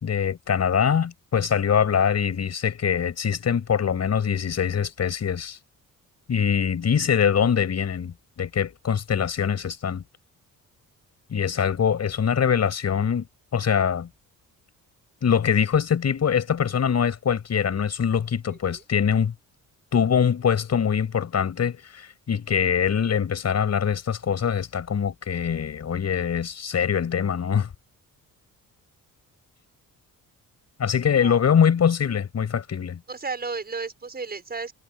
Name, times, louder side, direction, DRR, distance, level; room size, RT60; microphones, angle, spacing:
voice 1, 0.0-5.6 6.3-10.0 11.3-13.3 13.5-14.1 15.2-19.3 19.9-27.7 30.8-33.0, left 7 dB, 50° left, 6.2 m, -23 dB
voice 2, 18.5-18.8 31.2-31.4 33.1-34.7, right 4 dB, 30° right, 6.4 m, -33 dB
cardioid pair, 130°, 33 cm